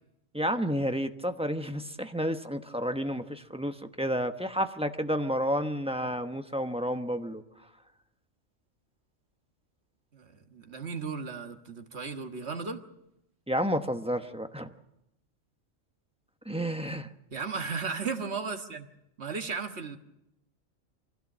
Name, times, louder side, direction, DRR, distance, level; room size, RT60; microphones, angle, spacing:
voice 1, 0.3-7.4 13.5-14.7 16.5-17.1, equal, 5° right, 7 dB, 0.9 m, -30 dB
voice 2, 10.1-12.8 17.3-18.9 19.2-20.0, right 5 dB, 60° right, 5 dB, 1.8 m, -35 dB
24.5 x 16.0 x 7.4 m, 0.85 s
omnidirectional pair, 1.3 m